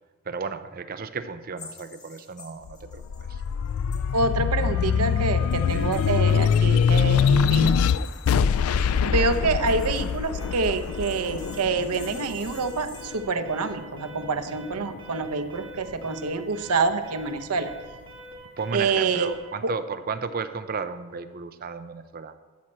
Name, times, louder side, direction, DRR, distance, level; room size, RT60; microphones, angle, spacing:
voice 1, 0.3-3.0 3.3-3.4 5.7-6.0 18.6-22.3, right 5 dB, 40° right, 10 dB, 0.5 m, -34 dB
sound 1, 1.6-4.3 4.6-13.1, left 4 dB, 30° left, 2.3 m, -50 dB
sound 2, 2.7-13.5 14.0-15.1, left 7 dB, 70° left, 0.3 m, -23 dB
voice 2, 4.1-7.7 9.0-17.7 18.7-19.3 19.6-19.7, right 4 dB, 90° right, 10 dB, 0.8 m, -26 dB
Alarm, 10.4-19.6, right 1 dB, 20° right, 1.8 m, -45 dB
13.0 x 4.3 x 7.5 m, 1.5 s
head